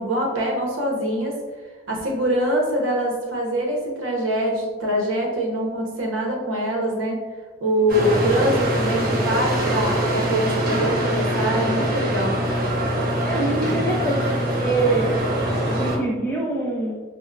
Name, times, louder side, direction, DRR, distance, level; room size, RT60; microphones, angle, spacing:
voice 1, 0.0-1.4 1.9-7.2 7.6-12.4, right 1 dB, 80° right, -1 dB, 0.8 m, -24 dB
sound 1, 7.9-16.0, right 1 dB, 45° right, 0.6 m, -23 dB
voice 2, 13.2-15.1 15.7-17.0, right 2 dB, 10° left, -2 dB, 0.4 m, -24 dB
4.4 x 2.0 x 2.3 m, 1.3 s
head